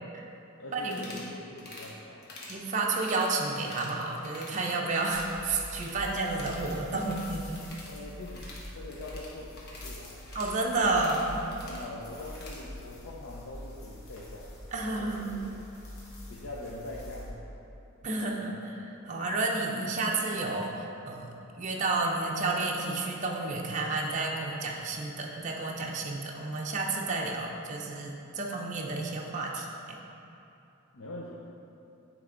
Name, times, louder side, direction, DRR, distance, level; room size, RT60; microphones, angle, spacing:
voice 1, 0.6-2.3 7.9-10.3 11.7-15.5 16.3-17.6 18.4-18.6 30.9-31.3, left 2 dB, 70° left, -5 dB, 0.6 m, -43 dB
sound 1, 0.9-1.3 1.6-1.9 2.2-2.6 2.9-3.9 4.2-4.6 4.9-6.0 6.2-12.6, left 2 dB, 50° left, 1.1 m, -48 dB
voice 2, 2.5-7.6 10.3-11.4 14.7-15.4 18.0-30.0, right 3 dB, 35° right, -1 dB, 0.5 m, -31 dB
sound 2, 5.1-17.3, left 1 dB, 85° left, 1.4 m, -45 dB
9.3 x 3.3 x 3.8 m, 2.8 s
head